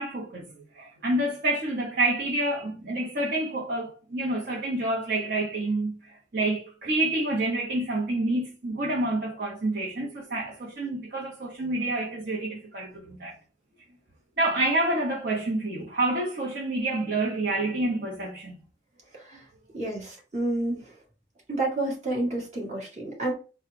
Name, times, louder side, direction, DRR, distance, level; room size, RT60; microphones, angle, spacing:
voice 1, 0.0-13.3 14.4-18.6, right 2 dB, 55° right, 1.1 m, -28 dB
voice 2, 19.1-19.4 19.7-20.9 21.5-23.3, right 2 dB, 40° right, 1.9 m, -30 dB
4.3 x 2.4 x 4.6 m
head